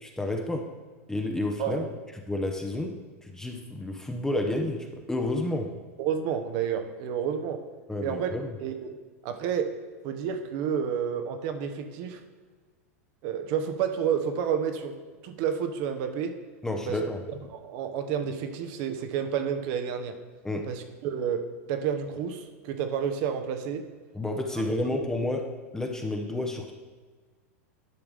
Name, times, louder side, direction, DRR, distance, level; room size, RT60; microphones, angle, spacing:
voice 1, 0.0-0.6 1.1-1.9 2.3-2.9 3.2-5.7 7.9-8.6 16.6-17.2 20.4-20.7 24.1-25.5 25.7-26.7, left 1 dB, 5° left, 3 dB, 0.8 m, -30 dB
voice 2, 6.0-7.6 8.0-9.0 9.2-9.7 10.0-12.2 13.2-15.0 15.2-16.3 16.9-17.0 17.5-20.1 20.7-23.8 24.9-25.0, right 8 dB, 55° right, 8 dB, 1.0 m, -30 dB
10.5 x 5.9 x 3.6 m, 1.4 s
hypercardioid pair, 105°, 8 cm